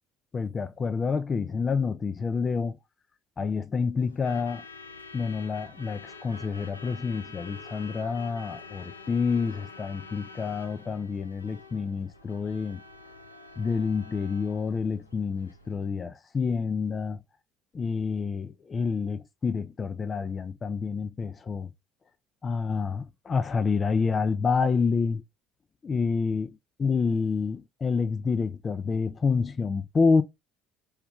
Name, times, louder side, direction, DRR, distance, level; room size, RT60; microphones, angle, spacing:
voice 1, 0.3-2.8 3.4-4.6 5.1-12.8 13.6-17.2 17.7-21.7 22.4-25.2 25.8-30.2, left 5 dB, 30° left, 0.5 m, -28 dB
Truck / Alarm, 4.0-15.9, left 3 dB, 85° left, 0.5 m, -47 dB
4.9 x 2.3 x 3.4 m
figure-of-eight pair, 55°, 0 cm